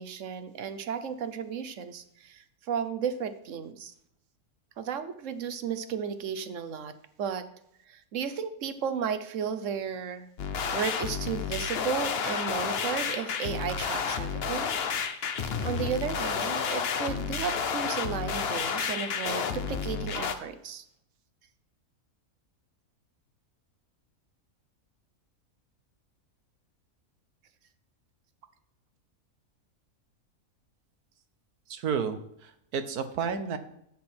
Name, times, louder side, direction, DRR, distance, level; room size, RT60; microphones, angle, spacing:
voice 1, 0.0-3.9 4.8-6.9 7.2-7.5 7.9-10.3 10.7-14.8 15.6-20.8, right 7 dB, 60° right, 11 dB, 1.1 m, -34 dB
sound 1, 10.4-20.4, left 6 dB, 50° left, 0.9 m, -31 dB
voice 2, 31.7-33.6, right 6 dB, 85° right, 9 dB, 1.5 m, -31 dB
11.0 x 8.1 x 4.4 m, 0.74 s
omnidirectional pair, 1.6 m